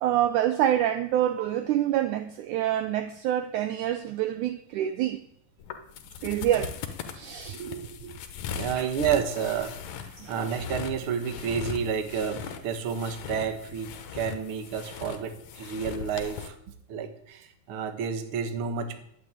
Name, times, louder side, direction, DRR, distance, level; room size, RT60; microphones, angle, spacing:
voice 1, 0.0-5.2 6.2-6.7 7.1-8.1 8.8-8.9 10.2-10.3, right 11 dB, 85° right, 1.7 m, -27 dB
sound 1, 5.6-16.5, left 8 dB, 65° left, 2.0 m, -39 dB
voice 2, 8.4-16.5 16.9-19.0, right 7 dB, 60° right, 1.4 m, -30 dB
11.5 x 8.7 x 9.0 m
omnidirectional pair, 4.3 m